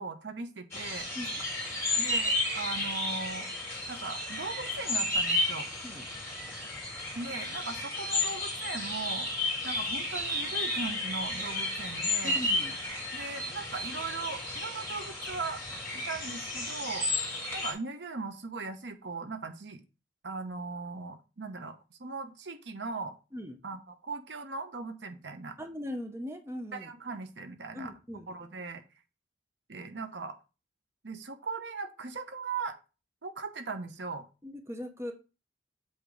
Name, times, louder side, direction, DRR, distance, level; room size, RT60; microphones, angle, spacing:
voice 1, 0.0-1.1 1.9-3.5 3.9-5.7 7.1-9.3 9.6-12.4 13.1-15.6 15.9-17.1 17.5-19.8 20.2-23.2 23.6-25.6 26.7-27.9 28.3-28.8 29.7-30.4 31.0-32.8 33.2-34.3, right 4 dB, 70° right, 7 dB, 0.9 m, -39 dB
sound 1, 0.7-17.7, left 2 dB, 15° left, 2.6 m, -33 dB
voice 2, 12.2-12.7 23.3-23.6 25.6-26.9 27.7-28.4 34.4-35.1, left 1 dB, 15° right, 5 dB, 0.8 m, -39 dB
8.0 x 2.9 x 5.0 m, 0.31 s
head